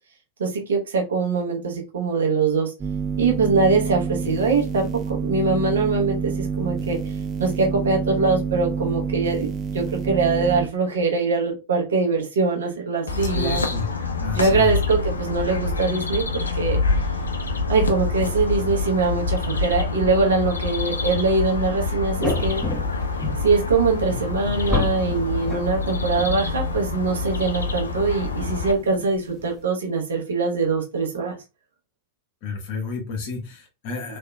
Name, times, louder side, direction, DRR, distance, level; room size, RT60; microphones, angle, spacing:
voice 1, 0.4-2.7 3.2-7.0 7.4-9.5 9.7-13.7 14.3-17.1 17.7-22.6 23.4-31.4, right 4 dB, 65° right, 1 dB, 0.9 m, -23 dB
sound 1, 2.8-10.7, right 5 dB, 25° right, 0.6 m, -28 dB
sound 2, 13.1-28.7, left 3 dB, 75° left, 0.4 m, -26 dB
voice 2, 13.3-13.9 14.2-14.8 32.4-34.2, left 4 dB, 45° left, 2 dB, 1.2 m, -31 dB
sound 3, 22.2-29.6, left 2 dB, 5° left, 1.1 m, -32 dB
3.4 x 2.8 x 2.2 m, 0.28 s
figure-of-eight pair, 90°, 0 cm